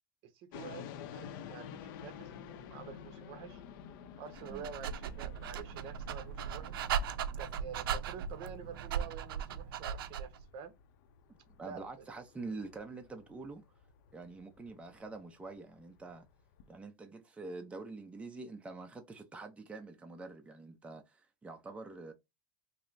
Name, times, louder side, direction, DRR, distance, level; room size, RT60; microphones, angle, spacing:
voice 1, 0.3-1.7 2.0-3.6 4.2-6.9 7.4-10.7 11.6-11.8, right 6 dB, 50° right, 0.8 m, -48 dB
sound 1, 0.5-16.8, left 8 dB, 70° left, 0.6 m, -52 dB
Dog, 4.3-10.4, right 8 dB, 90° right, 0.4 m, -38 dB
voice 2, 11.3-13.6 14.1-16.3 16.7-22.1, right 3 dB, 10° right, 0.6 m, -46 dB
5.3 x 2.0 x 2.6 m
supercardioid pair, 125°, 12 cm